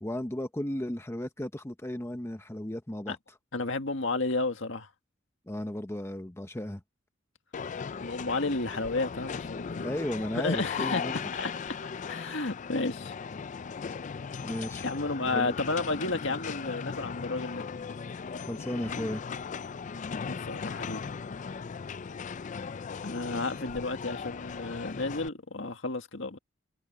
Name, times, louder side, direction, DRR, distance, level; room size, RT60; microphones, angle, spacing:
voice 1, 0.0-3.2 5.5-6.8 9.8-11.3 14.4-14.9 15.2-15.6 18.4-19.2, left 1 dB, 15° left, 0.8 m, -35 dB
voice 2, 3.5-4.9 8.0-10.0 10.3-11.0 11.3-11.8 12.1-13.1 14.8-17.7 20.2-21.0 23.0-26.4, left 3 dB, 65° left, 2.0 m, -32 dB
sound 1, 7.5-25.3, left 6 dB, 40° left, 0.4 m, -38 dB
head